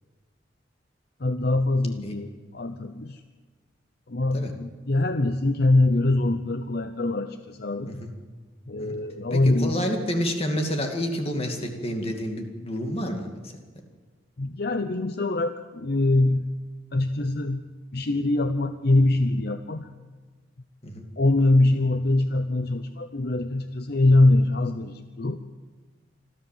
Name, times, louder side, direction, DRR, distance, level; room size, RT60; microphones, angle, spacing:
voice 1, 1.2-3.2 4.1-8.0 8.7-9.8 14.4-16.6 16.9-19.9 21.2-25.4, left 2 dB, 55° left, 9 dB, 0.7 m, -23 dB
voice 2, 9.3-13.6 20.8-21.1, equal, 30° left, 3 dB, 2.3 m, -29 dB
25.5 x 14.0 x 7.5 m, 1.4 s
head